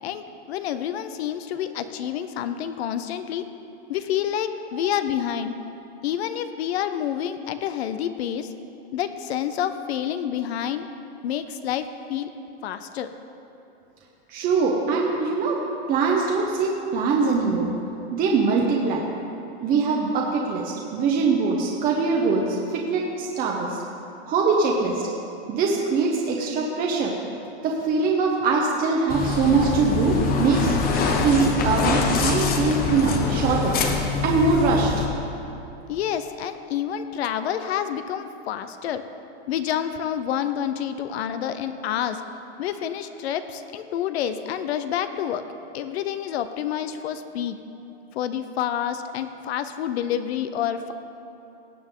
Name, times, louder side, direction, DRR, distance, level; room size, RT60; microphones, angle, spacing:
voice 1, 0.0-3.5 3.9-5.6 6.0-8.5 8.9-10.9 11.2-12.3 12.6-13.1 35.9-39.0 39.5-42.2 42.6-45.4 45.7-47.6 48.1-50.9, left 9 dB, 70° left, 10 dB, 0.7 m, -28 dB
voice 2, 14.3-15.6 15.9-17.7 18.1-19.1 19.6-23.8 24.2-25.1 25.5-27.1 27.6-30.8 31.2-33.8 34.2-34.9, right 4 dB, 25° right, -1 dB, 1.0 m, -22 dB
sound 1, 29.1-35.1, left 4 dB, 25° left, 1.0 m, -24 dB
18.0 x 7.2 x 3.7 m, 2.9 s
supercardioid pair, 140°, 33 cm